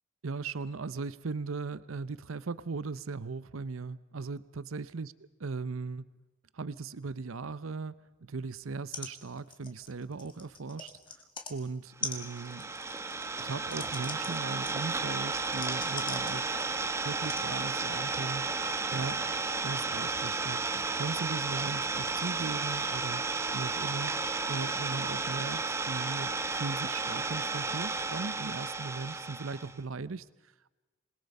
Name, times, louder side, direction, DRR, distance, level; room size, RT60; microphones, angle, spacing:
voice 1, 0.2-5.1 5.4-6.1 6.5-7.9 8.2-11.2 11.5-12.7 13.4-16.6 17.0-18.5 18.9-19.3 19.6-24.1 24.5-30.7, right 4 dB, 85° right, 17 dB, 0.7 m, -38 dB
sound 1, 8.6-8.7 8.9-9.1 9.4-11.5 12.0-16.8 17.3-17.5 18.3-18.4, left 4 dB, 25° left, 2.1 m, -42 dB
Idling, 12.0-29.7, right 3 dB, 15° right, 0.9 m, -33 dB
27.5 x 21.5 x 5.4 m, 1.1 s
head